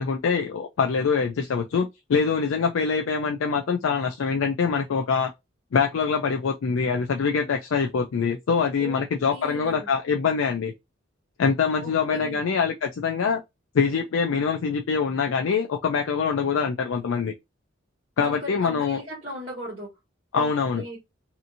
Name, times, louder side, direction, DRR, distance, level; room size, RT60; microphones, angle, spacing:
voice 1, 0.0-5.3 5.7-10.7 11.4-13.4 13.7-17.3 18.2-19.0 20.3-20.8, left 5 dB, 90° left, 0.4 m, -24 dB
voice 2, 8.8-9.9 11.8-12.4 18.2-19.9 20.3-20.5 20.7-21.0, equal, 35° right, 1.2 m, -37 dB
2.8 x 2.6 x 2.6 m
head